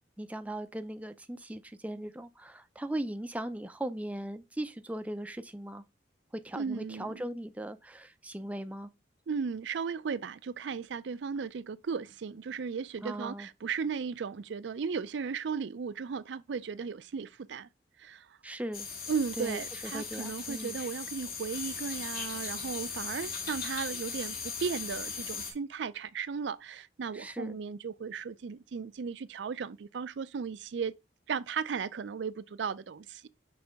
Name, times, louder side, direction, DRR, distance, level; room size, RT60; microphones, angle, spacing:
voice 1, 0.2-5.8 6.3-8.9 13.0-13.5 18.4-18.9 19.4-20.8 27.1-27.6, right 1 dB, 10° right, 0.4 m, -38 dB
voice 2, 6.5-7.1 9.3-17.7 18.0-18.4 19.1-31.0 31.3-33.3, right 6 dB, 75° right, 0.4 m, -36 dB
sound 1, 18.7-25.5, left 5 dB, 55° left, 1.9 m, -38 dB
6.2 x 3.2 x 5.1 m
head